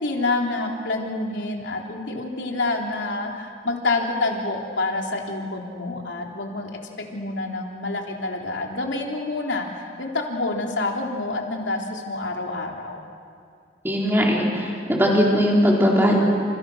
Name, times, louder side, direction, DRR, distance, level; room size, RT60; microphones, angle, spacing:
voice 1, 0.0-6.7 7.1-9.7 10.0-13.0, left 2 dB, 85° left, 1 dB, 3.7 m, -27 dB
voice 2, 13.8-16.2, equal, 10° right, -2 dB, 4.2 m, -19 dB
29.5 x 28.0 x 6.4 m, 2.2 s
head